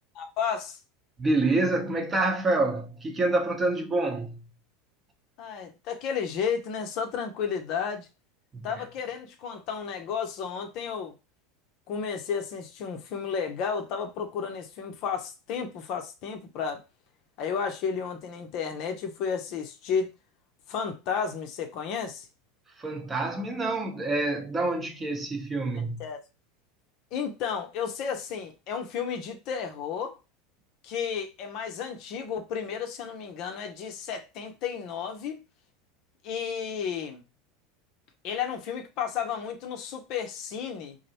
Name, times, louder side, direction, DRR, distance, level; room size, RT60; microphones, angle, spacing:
voice 1, 0.1-0.8 5.4-8.1 8.6-11.1 11.9-16.8 17.4-20.1 20.7-22.3 25.8-26.2 27.1-30.2 30.8-35.4 36.2-37.2 38.2-41.0, left 6 dB, 55° left, 0.6 m, -32 dB
voice 2, 1.2-4.4 8.5-8.7 22.8-26.0, right 2 dB, 25° right, 0.7 m, -27 dB
2.5 x 2.0 x 2.8 m
hypercardioid pair, 95°, 0 cm